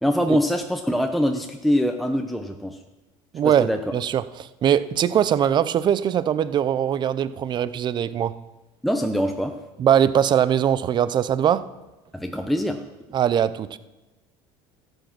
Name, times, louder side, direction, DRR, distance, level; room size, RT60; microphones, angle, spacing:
voice 1, 0.0-2.8 3.4-3.9 8.8-9.5 12.1-12.8, equal, ahead, 4 dB, 0.8 m, -23 dB
voice 2, 3.3-8.3 9.8-11.6 13.1-13.8, right 9 dB, 40° right, 15 dB, 0.6 m, -21 dB
13.0 x 8.0 x 5.9 m, 1.1 s
supercardioid pair, 105°, 12 cm